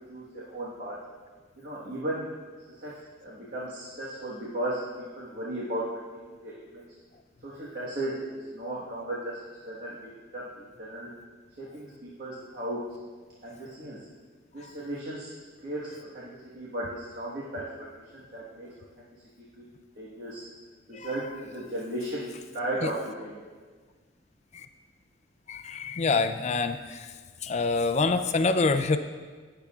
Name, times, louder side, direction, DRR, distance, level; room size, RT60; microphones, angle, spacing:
voice 1, 0.1-1.0 1.6-2.3 2.7-6.8 7.4-9.4 9.6-11.1 11.6-12.8 13.4-14.0 14.5-15.3 15.6-17.9 18.1-19.1 19.6-19.7 19.9-20.4 20.9-22.3 22.5-23.4, right 1 dB, 55° right, -7 dB, 1.4 m, -36 dB
voice 2, 25.5-27.1 27.4-29.0, left 3 dB, 35° left, 9 dB, 0.4 m, -26 dB
19.0 x 6.8 x 2.4 m, 1.5 s
head